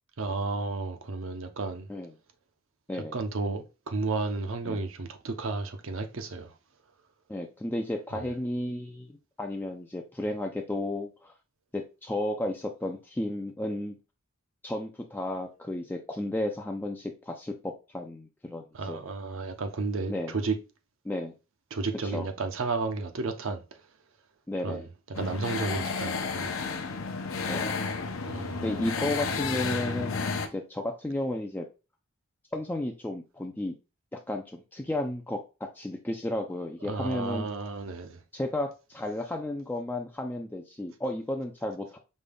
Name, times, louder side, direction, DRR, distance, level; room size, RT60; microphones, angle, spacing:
voice 1, 0.2-1.9 2.9-6.5 8.1-8.3 18.7-20.6 21.7-23.8 24.6-26.6 28.2-28.7 36.8-38.2, right 3 dB, 65° right, 0.6 m, -33 dB
voice 2, 7.3-11.3 11.7-14.0 14.6-19.0 20.1-20.3 21.0-21.3 22.0-22.3 24.5-24.8 27.4-27.8 28.6-31.7 32.5-33.7 34.1-35.4 35.7-37.5 38.3-42.0, left 1 dB, 10° left, 0.3 m, -33 dB
sound 1, 25.1-30.5, left 4 dB, 65° left, 0.6 m, -32 dB
5.2 x 2.3 x 3.3 m
head